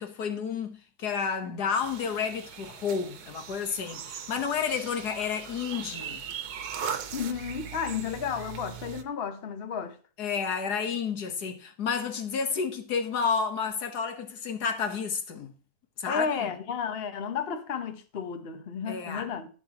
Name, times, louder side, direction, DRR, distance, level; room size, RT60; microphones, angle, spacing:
voice 1, 0.0-6.2 10.2-15.5 16.0-16.5 18.9-19.3, left 6 dB, 80° left, 1.8 m, -31 dB
sound 1, 1.8-9.0, right 7 dB, 75° right, 1.4 m, -39 dB
voice 2, 7.1-10.0 16.1-19.5, left 7 dB, 40° left, 1.1 m, -32 dB
11.5 x 9.6 x 3.0 m
omnidirectional pair, 1.7 m